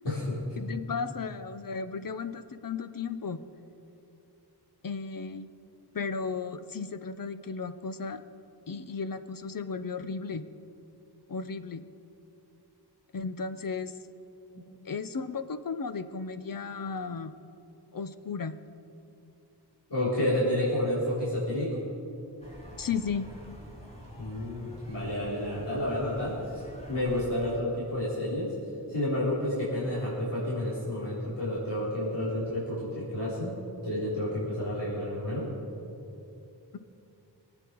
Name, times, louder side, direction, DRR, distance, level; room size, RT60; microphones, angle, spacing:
voice 1, 0.6-3.4 4.8-5.5 5.9-8.2 8.7-10.4 11.3-11.8 13.1-13.9 14.8-17.3 17.9-18.6 22.8-23.3, left 5 dB, 55° left, 11 dB, 0.8 m, -34 dB
voice 2, 19.9-21.8 24.2-26.6 26.9-28.5 28.9-33.5 33.8-35.5, left 1 dB, 80° left, -9 dB, 4.2 m, -30 dB
sound 1, 22.4-27.6, equal, 15° left, 3.3 m, -46 dB
24.0 x 9.1 x 4.7 m, 2.8 s
wide cardioid pair, 80°, 40 cm